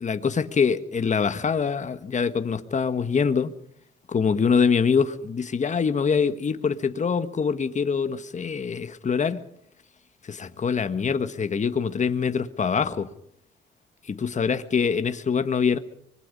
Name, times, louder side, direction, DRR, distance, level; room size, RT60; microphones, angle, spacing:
voice 1, 0.0-3.5 4.1-9.4 10.2-13.1 14.1-15.8, left 6 dB, 35° left, 1.5 m, -24 dB
24.5 x 21.5 x 5.5 m
cardioid pair, 90°, 20 cm